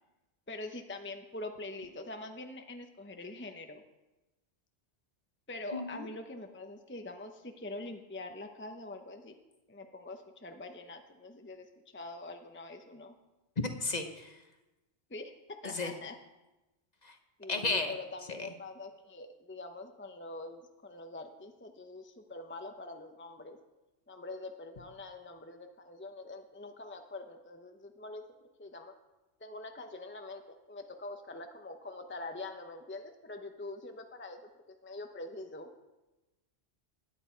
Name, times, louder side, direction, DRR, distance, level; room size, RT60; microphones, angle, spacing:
voice 1, 0.5-3.8 5.5-9.4 9.7-13.1 15.1-16.2 17.4-23.6 24.1-28.2 28.6-28.9 29.4-34.5 34.8-35.7, left 2 dB, 10° left, 5 dB, 0.8 m, -44 dB
voice 2, 13.6-14.3 15.7-15.9 17.0-17.1 17.5-17.9, left 3 dB, 40° left, 5 dB, 1.2 m, -32 dB
16.5 x 10.5 x 4.5 m, 1.0 s
omnidirectional pair, 1.1 m